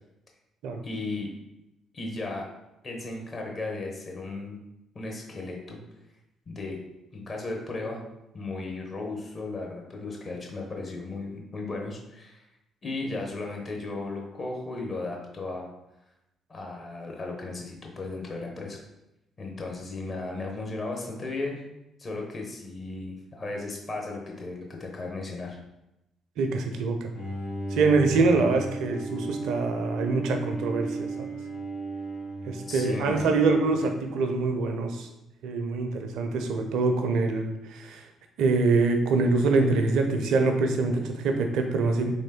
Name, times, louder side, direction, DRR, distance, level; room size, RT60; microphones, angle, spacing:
voice 1, 0.8-1.3 1.9-2.4 2.8-4.6 4.9-5.8 6.5-6.8 7.1-8.0 8.3-12.4 12.8-15.7 16.5-18.8 19.4-21.6 22.0-25.6 32.7-33.4, left 3 dB, 40° left, 0 dB, 0.9 m, -35 dB
voice 2, 26.4-27.1 27.7-31.3 32.5-35.1 35.4-38.0 38.4-42.1, right 3 dB, 65° right, 5 dB, 0.4 m, -25 dB
Bowed string instrument, 27.1-34.4, right 2 dB, 75° left, 1.1 m, -35 dB
3.5 x 3.1 x 2.9 m, 0.90 s
figure-of-eight pair, 45°, 0 cm